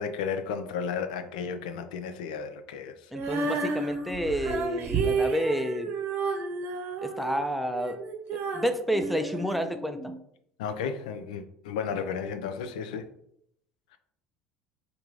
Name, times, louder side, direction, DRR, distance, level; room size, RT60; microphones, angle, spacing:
voice 1, 0.0-3.0 10.6-13.1, left 6 dB, 80° left, 8 dB, 0.3 m, -33 dB
voice 2, 3.1-5.9 7.0-8.0 8.3-10.1, equal, ahead, 8 dB, 0.4 m, -30 dB
Female singing, 3.1-10.2, right 4 dB, 50° right, 0.7 m, -31 dB
3.4 x 2.5 x 3.0 m, 0.72 s
hypercardioid pair, 70°, 4 cm